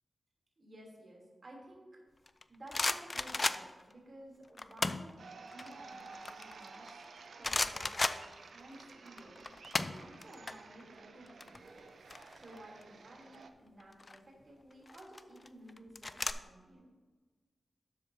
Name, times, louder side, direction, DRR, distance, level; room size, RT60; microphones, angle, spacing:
voice 1, 0.6-2.0 2.5-7.0 7.4-8.2 8.5-16.9, right 1 dB, 45° right, -2 dB, 3.0 m, -55 dB
sound 1, 2.3-3.9 4.6-5.1 5.5-7.0 7.4-8.8 9.1-10.5 10.8-11.0 11.3-12.8 13.8-14.2 14.9-16.3, left 2 dB, 35° left, 0.4 m, -35 dB
sound 2, 5.2-13.5, right 4 dB, 80° right, 0.6 m, -53 dB
11.5 x 7.9 x 2.7 m, 1.4 s
wide cardioid pair, 85°, 0 cm